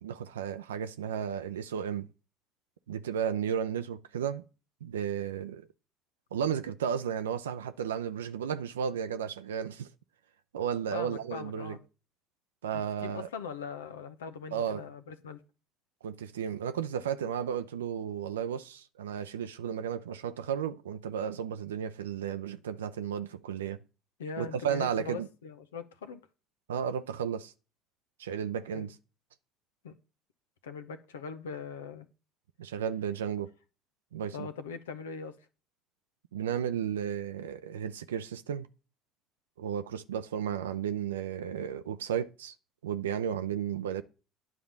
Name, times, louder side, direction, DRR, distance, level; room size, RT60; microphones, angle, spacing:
voice 1, 0.0-2.1 2.9-4.4 4.8-5.7 6.3-9.9 10.5-11.8 12.6-13.3 14.5-14.9 16.0-23.8 24.4-25.3 26.7-27.5 28.2-28.9 32.6-33.5 34.1-34.5 36.3-38.7 39.6-42.5 42.8-44.0, right 8 dB, 85° right, 0.4 m, -33 dB
voice 2, 10.9-11.8 12.7-15.4 24.2-26.2 28.7-28.9 29.8-29.9 30.6-32.1 34.3-35.4, left 5 dB, 85° left, 0.8 m, -41 dB
9.7 x 3.8 x 7.1 m
hypercardioid pair, 65°, 0 cm